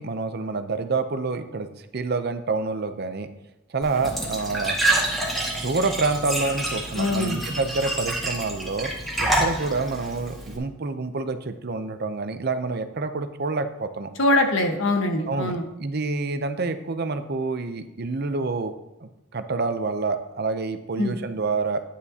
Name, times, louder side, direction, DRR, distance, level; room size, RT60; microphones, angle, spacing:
voice 1, 0.0-1.7 1.9-3.3 3.7-4.8 5.6-8.9 9.2-14.1 15.3-18.7 19.0-21.8, right 3 dB, 50° right, 9 dB, 0.6 m, -27 dB
Glass / Trickle dribble / Fill (with liquid), 3.8-10.6, right 1 dB, ahead, 1.8 m, -27 dB
voice 2, 7.0-7.4 14.2-15.7 21.0-21.1, left 2 dB, 70° left, 4 dB, 1.3 m, -22 dB
10.0 x 9.5 x 2.8 m, 0.92 s
head